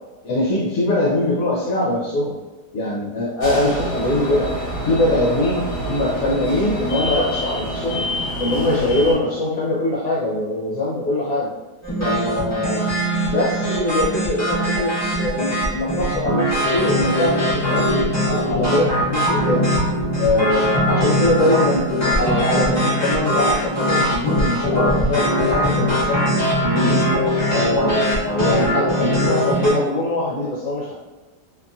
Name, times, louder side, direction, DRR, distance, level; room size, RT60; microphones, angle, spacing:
voice 1, 0.2-2.3 2.7-4.5 4.8-8.1 8.4-11.5 12.0-12.9 13.3-17.8 18.2-19.7 20.1-26.2 26.6-27.0 27.5-30.9, left 1 dB, 65° left, -6 dB, 1.0 m, -22 dB
sound 1, 3.4-9.1, equal, 40° left, 1.1 m, -26 dB
sound 2, 11.8-29.7, equal, 20° left, 0.5 m, -21 dB
2.8 x 2.6 x 2.3 m, 1.2 s
omnidirectional pair, 1.8 m